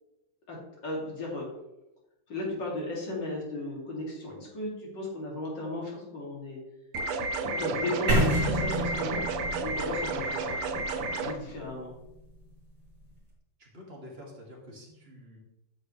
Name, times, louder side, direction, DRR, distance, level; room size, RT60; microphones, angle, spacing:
voice 1, 0.8-1.5 2.3-6.6 7.5-9.2 9.6-10.6 11.2-11.9, left 2 dB, 55° left, -3 dB, 3.0 m, -35 dB
sound 1, 6.9-11.3, right 3 dB, 85° right, 1.7 m, -31 dB
sound 2, 8.1-12.1, right 1 dB, 55° right, 2.7 m, -30 dB
voice 2, 13.6-15.4, left 1 dB, 30° right, -3 dB, 2.1 m, -48 dB
9.4 x 6.6 x 3.1 m, 0.94 s
omnidirectional pair, 2.4 m